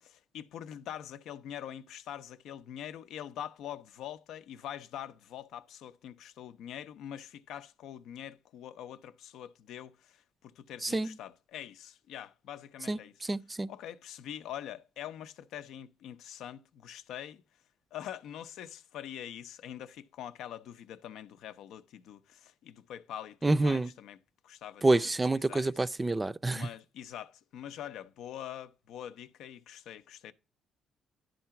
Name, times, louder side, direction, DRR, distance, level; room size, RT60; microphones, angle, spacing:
voice 1, 0.0-13.1 13.7-17.4 17.9-24.2 24.4-25.1 25.4-25.9 26.4-30.3, left 10 dB, 85° left, 0.6 m, -44 dB
voice 2, 12.9-13.7 23.4-23.9 24.8-26.7, right 2 dB, 20° right, 0.4 m, -28 dB
11.0 x 3.8 x 5.7 m
cardioid pair, 90°, 0 cm